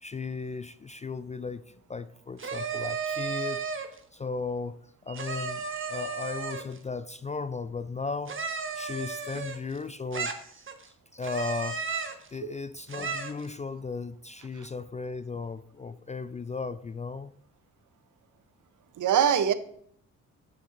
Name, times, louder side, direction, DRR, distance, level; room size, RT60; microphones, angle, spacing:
voice 1, 0.0-3.6 4.1-8.4 8.7-17.3, left 4 dB, 20° left, 13 dB, 0.4 m, -36 dB
sound 1, 2.4-4.0 5.2-6.8 8.3-9.8 10.1-10.9 11.2-12.3 12.9-13.5, right 5 dB, 30° right, 1.2 m, -34 dB
voice 2, 5.1-5.5 5.8-5.9 12.4-12.5 19.0-19.5, right 9 dB, 50° right, 13 dB, 0.8 m, -25 dB
9.1 x 8.9 x 2.6 m, 0.64 s
hypercardioid pair, 40°, 39 cm